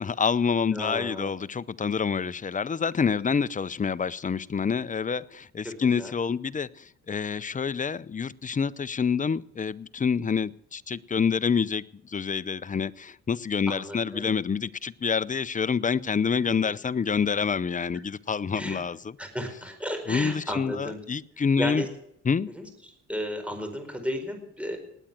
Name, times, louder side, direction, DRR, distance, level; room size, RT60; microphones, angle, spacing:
voice 1, 0.0-19.2 20.1-21.8 22.3-22.5, left 6 dB, 25° left, 17 dB, 0.6 m, -27 dB
voice 2, 0.7-1.3 5.6-6.1 13.7-14.3 16.4-16.7 18.6-18.8 19.2-21.0 21.6-21.9 22.5-22.7 23.1-24.8, equal, 5° right, 6 dB, 4.6 m, -34 dB
19.0 x 9.0 x 7.5 m, 0.74 s
cardioid pair, 90°, 30 cm